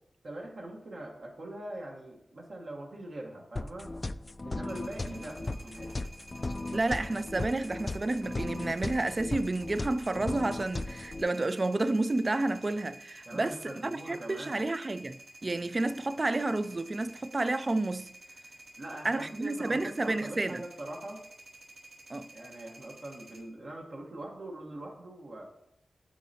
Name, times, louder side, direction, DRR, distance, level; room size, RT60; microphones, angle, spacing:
voice 1, 0.2-3.9 4.4-5.9 6.5-6.9 13.3-14.5 18.8-21.2 22.3-25.5, right 1 dB, 70° right, 1.3 m, -43 dB
sound 1, 3.6-11.2, left 2 dB, 45° left, 0.3 m, -37 dB
sound 2, 4.7-23.4, right 1 dB, 85° right, 2.1 m, -52 dB
voice 2, 6.7-18.1 19.0-20.6 22.1-22.3, right 2 dB, 45° right, 0.4 m, -30 dB
9.3 x 4.1 x 2.8 m
cardioid pair, 45°, 0 cm